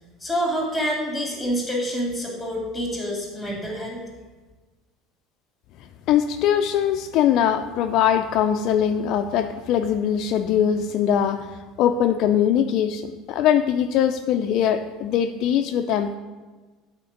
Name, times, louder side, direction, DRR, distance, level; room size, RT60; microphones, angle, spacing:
voice 1, 0.2-4.0, equal, ahead, 0 dB, 2.2 m, -27 dB
voice 2, 6.1-11.4 11.8-13.0 13.3-16.2, left 9 dB, 55° left, 6 dB, 0.4 m, -21 dB
8.5 x 4.3 x 6.5 m, 1.3 s
cardioid pair, 145°, 0 cm